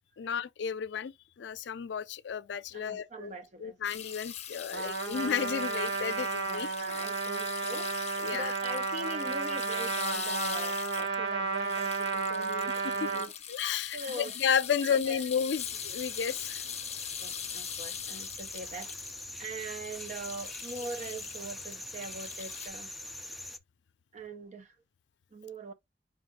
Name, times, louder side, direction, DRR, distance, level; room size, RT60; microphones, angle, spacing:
voice 1, 0.2-3.3 3.6-6.7 8.2-8.5 13.0-13.1 13.5-16.6, left 7 dB, 85° left, 0.4 m, -32 dB
voice 2, 2.7-3.8 6.4-13.3 13.9-14.3 14.8-15.2 17.2-18.9 19.4-22.9 24.1-24.8 25.3-25.7, right 3 dB, 40° right, 0.7 m, -42 dB
sound 1, 3.8-11.3 11.5-19.4 19.8-22.7, left 9 dB, 40° left, 0.7 m, -42 dB
Trumpet, 4.7-13.3, right 4 dB, 85° right, 1.5 m, -32 dB
sound 2, 15.6-23.6, left 1 dB, ahead, 0.4 m, -43 dB
5.2 x 2.5 x 3.5 m
head